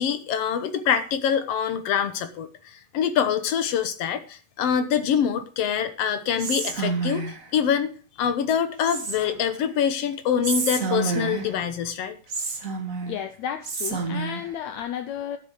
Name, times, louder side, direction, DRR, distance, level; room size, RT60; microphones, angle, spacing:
voice 1, 0.0-7.3 7.5-12.2, left 8 dB, 65° left, 1.6 m, -25 dB
Whispering, 6.4-7.5 8.8-9.5 10.4-11.6 12.3-13.2 13.6-14.5, right 4 dB, 30° right, 1.7 m, -29 dB
voice 2, 13.1-15.4, left 9 dB, 80° left, 1.6 m, -32 dB
12.0 x 8.7 x 5.0 m
omnidirectional pair, 4.0 m